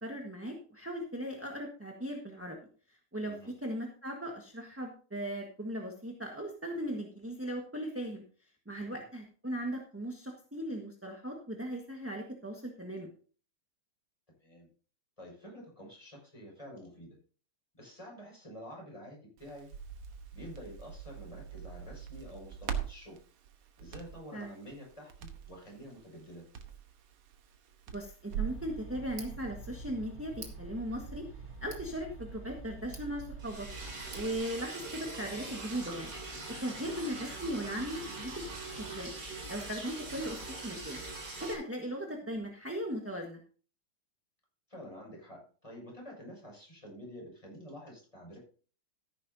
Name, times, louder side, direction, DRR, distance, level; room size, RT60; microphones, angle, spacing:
voice 1, 0.0-2.6 2.9-8.2 8.6-13.1 24.3-24.5 27.9-31.3 31.6-33.7 34.1-36.1 36.6-38.4 38.8-39.1 39.5-41.0 41.4-43.4, equal, 10° right, 1 dB, 1.2 m, -38 dB
voice 2, 15.2-17.2 17.8-19.7 20.3-23.2 23.8-26.4 36.7-36.9 44.7-48.4, equal, 15° left, -2 dB, 6.2 m, -49 dB
Crackle, 19.4-28.6, right 9 dB, 90° right, 2.1 m, -42 dB
Tick, 28.3-34.4, right 4 dB, 30° right, 2.4 m, -46 dB
Liquid, 33.4-41.5, right 2 dB, 45° right, 3.7 m, -42 dB
13.5 x 11.0 x 2.8 m, 0.40 s
omnidirectional pair, 2.4 m